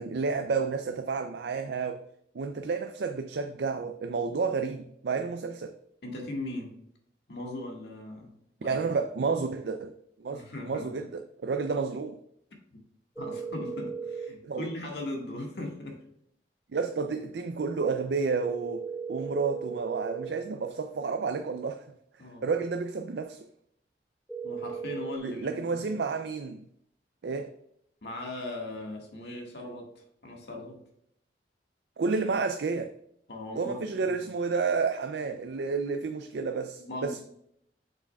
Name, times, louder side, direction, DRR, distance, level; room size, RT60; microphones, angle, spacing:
voice 1, 0.0-2.0 2.3-5.8 8.6-9.9 10.2-12.2 14.4-14.7 16.7-18.8 19.1-21.8 22.4-23.4 25.2-26.7 27.2-27.5 32.0-32.9 33.6-37.2, right 4 dB, 75° right, 0.4 m, -30 dB
voice 2, 6.0-6.7 7.3-8.3 8.6-9.0 10.3-11.1 12.7-12.8 13.2-16.0 22.2-22.6 24.4-26.0 28.0-30.8 33.3-34.2 36.8-37.2, left 1 dB, 75° left, 1.7 m, -39 dB
sound 1, 13.2-14.3 18.3-20.3 24.3-25.2, right 6 dB, 5° right, 0.3 m, -36 dB
7.6 x 6.2 x 2.3 m
head